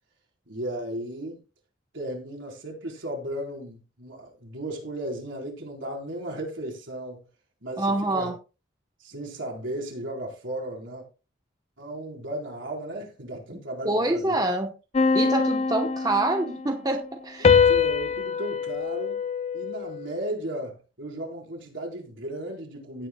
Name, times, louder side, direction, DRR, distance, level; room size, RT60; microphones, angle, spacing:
voice 1, 0.5-1.4 1.9-7.2 7.6-8.3 9.0-11.0 11.8-14.5 17.4-19.2 19.5-23.1, right 1 dB, 70° right, 4.0 m, -35 dB
voice 2, 7.8-8.3 13.8-14.7 15.1-17.6, right 2 dB, 20° right, 0.9 m, -26 dB
sound 1, 14.9-16.7 17.4-20.1, left 5 dB, 30° left, 0.4 m, -23 dB
16.5 x 9.0 x 2.2 m
head